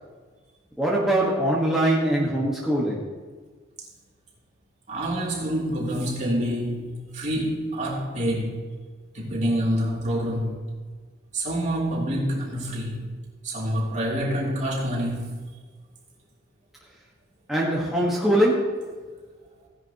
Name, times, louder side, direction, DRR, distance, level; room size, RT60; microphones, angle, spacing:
voice 1, 0.8-3.1 17.5-18.9, right 1 dB, ahead, -5 dB, 1.5 m, -22 dB
voice 2, 4.9-8.7 9.1-10.6 11.3-13.0 13.4-15.3, equal, 40° right, -4 dB, 3.2 m, -27 dB
16.5 x 10.5 x 3.0 m, 1.5 s
head